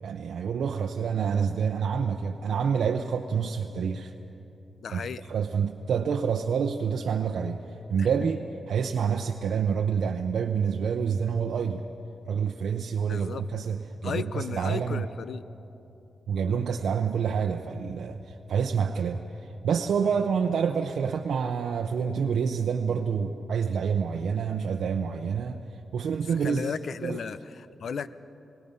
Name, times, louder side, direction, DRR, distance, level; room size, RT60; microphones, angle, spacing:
voice 1, 0.0-4.1 4.9-7.6 7.9-11.8 12.2-15.0 16.3-25.6 25.9-26.7 27.0-27.2, right 6 dB, 80° right, 3 dB, 0.7 m, -28 dB
voice 2, 4.8-5.3 8.0-8.1 13.1-13.5 14.0-15.4 20.0-20.3 26.4-28.1, left 6 dB, 70° left, 14 dB, 0.7 m, -35 dB
28.5 x 19.0 x 5.5 m, 2.9 s
wide cardioid pair, 110°, 0 cm